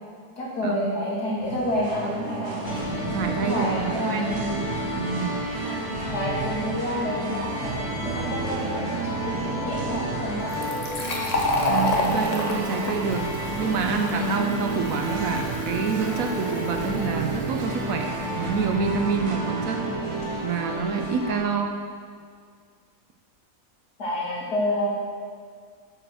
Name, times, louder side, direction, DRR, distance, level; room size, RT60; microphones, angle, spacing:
voice 1, 0.4-2.8 3.4-4.6 6.1-10.9 24.0-25.0, equal, 75° left, -6 dB, 2.7 m, -29 dB
Singing, 1.4-20.5, right 6 dB, 85° right, 1.2 m, -34 dB
sound 1, 2.6-21.4, left 1 dB, 50° left, 2.3 m, -31 dB
voice 2, 3.1-4.5 4.9-5.4 11.7-13.3 13.6-19.8 20.4-21.8, right 6 dB, 70° right, 4 dB, 1.0 m, -27 dB
Fill (with liquid), 10.5-17.9, left 1 dB, 30° left, 0.8 m, -30 dB
7.5 x 5.3 x 6.2 m, 2.1 s
omnidirectional pair, 1.7 m